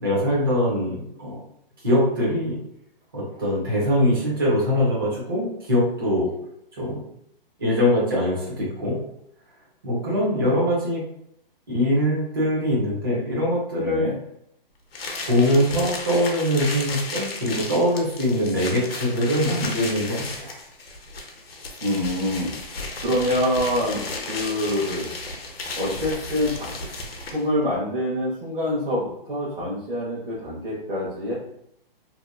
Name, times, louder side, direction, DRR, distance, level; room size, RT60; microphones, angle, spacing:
voice 1, 0.0-1.4 1.8-2.6 3.1-6.3 6.7-7.0 7.6-9.0 9.8-11.0 11.7-14.1 15.3-20.6, equal, 25° right, -6 dB, 0.7 m, -22 dB
voice 2, 13.8-14.1 21.8-25.1 25.8-26.7 27.3-31.3, left 1 dB, 65° right, -7 dB, 1.0 m, -26 dB
sound 1, 14.9-27.5, left 3 dB, 80° left, 0.7 m, -34 dB
2.8 x 2.4 x 2.3 m, 0.73 s
hypercardioid pair, 180°, 29 cm